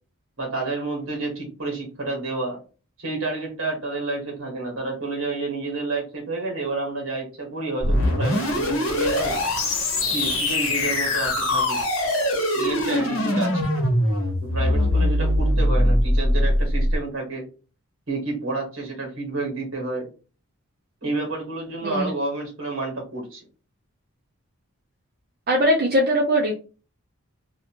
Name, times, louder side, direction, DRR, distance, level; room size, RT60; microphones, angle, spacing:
voice 1, 0.4-2.6 3.0-9.4 10.1-11.8 12.5-13.6 14.4-17.5 18.1-20.1 21.0-23.4, right 3 dB, 65° right, 0 dB, 1.5 m, -29 dB
sound 1, 7.8-17.0, left 1 dB, 75° left, 1.0 m, -22 dB
voice 2, 25.5-26.6, equal, 45° right, -1 dB, 0.5 m, -20 dB
2.7 x 2.4 x 2.9 m, 0.35 s
head